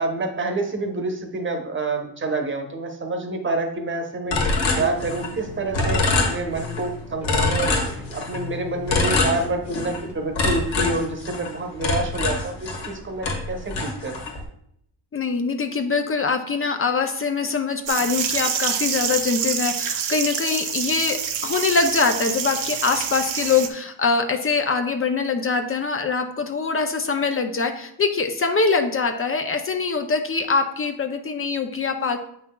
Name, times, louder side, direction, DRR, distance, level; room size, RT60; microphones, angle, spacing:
voice 1, 0.0-14.3, right 2 dB, 25° right, 5 dB, 0.9 m, -28 dB
sound 1, 4.2-10.1, left 1 dB, 5° right, 0.9 m, -38 dB
sound 2, 4.3-5.4 5.7-6.9 7.2-8.4 8.9-10.0 10.4-13.0 13.2-14.4, left 3 dB, 80° left, 1.7 m, -24 dB
voice 2, 15.1-32.2, left 4 dB, 30° left, 6 dB, 0.5 m, -23 dB
sound 3, 17.9-23.7, right 8 dB, 90° right, 0.8 m, -27 dB
8.1 x 5.6 x 2.3 m, 0.70 s
cardioid pair, 120°, 46 cm